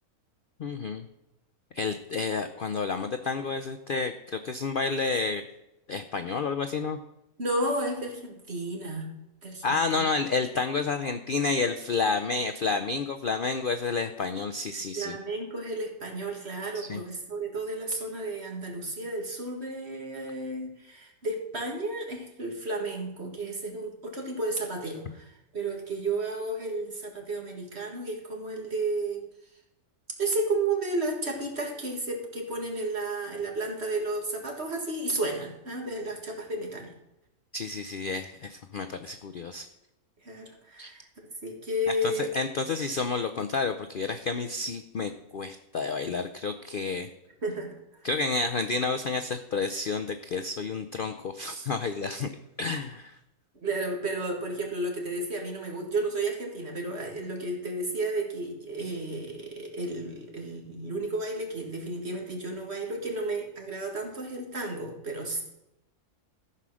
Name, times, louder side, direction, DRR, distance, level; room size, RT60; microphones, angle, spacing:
voice 1, 0.6-1.0 1.7-5.4 5.9-7.0 9.6-15.2 16.7-17.0 37.5-39.7 40.8-40.9 42.0-47.1 48.0-52.3 52.6-53.2, left 4 dB, 65° left, 7 dB, 0.5 m, -30 dB
voice 2, 7.4-9.1 9.4-10.1 15.0-29.2 30.2-36.9 40.2-42.3 47.4-47.8 53.6-65.4, right 2 dB, 45° right, 1 dB, 2.1 m, -32 dB
14.0 x 5.6 x 6.2 m, 0.89 s
omnidirectional pair, 1.6 m